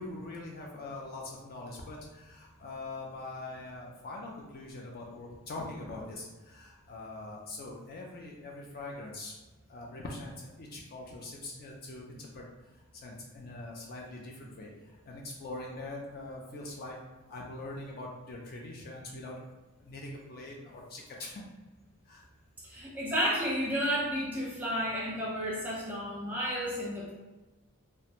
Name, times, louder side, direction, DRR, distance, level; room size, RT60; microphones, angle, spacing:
voice 1, 0.0-9.3 9.7-12.4 12.7-17.0 17.3-19.4 19.8-21.4 22.1-22.2, left 2 dB, 45° left, -1 dB, 0.4 m, -43 dB
voice 2, 22.6-27.1, equal, 10° right, -6 dB, 0.6 m, -32 dB
2.4 x 2.1 x 2.8 m, 1.2 s
head